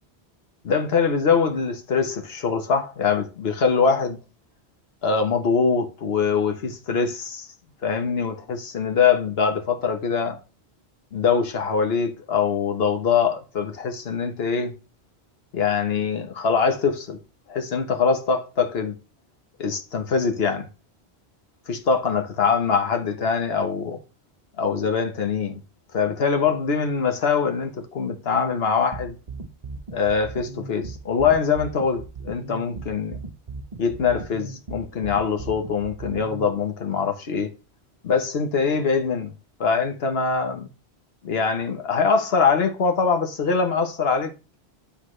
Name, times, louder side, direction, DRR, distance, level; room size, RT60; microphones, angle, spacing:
voice 1, 0.6-4.2 5.0-7.3 7.8-10.4 11.1-14.7 15.5-17.2 17.5-19.0 19.6-20.7 21.7-24.0 24.6-25.6 25.9-29.2 29.9-33.2 33.8-37.5 38.0-39.3 39.6-40.7 41.2-44.3, left 5 dB, 70° left, 1.2 m, -23 dB
sound 1, 28.9-36.5, right 4 dB, 35° right, 0.9 m, -37 dB
9.8 x 3.5 x 3.1 m
omnidirectional pair, 1.1 m